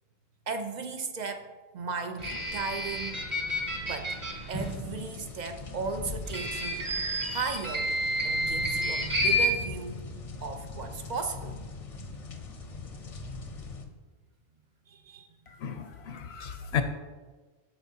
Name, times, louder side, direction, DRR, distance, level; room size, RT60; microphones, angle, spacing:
voice 1, 0.5-3.2 3.5-4.2 4.5-6.9 7.3-8.0 8.2-10.1 10.4-11.6 14.9-15.3, right 4 dB, 50° right, 7 dB, 0.6 m, -36 dB
sound 1, 2.2-4.7 6.3-9.5, equal, 25° right, 1.2 m, -30 dB
sound 2, 4.6-13.8, left 3 dB, 40° left, 0.7 m, -41 dB
voice 2, 15.6-16.8, left 7 dB, 75° left, 8 dB, 0.9 m, -33 dB
13.5 x 4.6 x 2.8 m, 1.3 s
omnidirectional pair, 1.1 m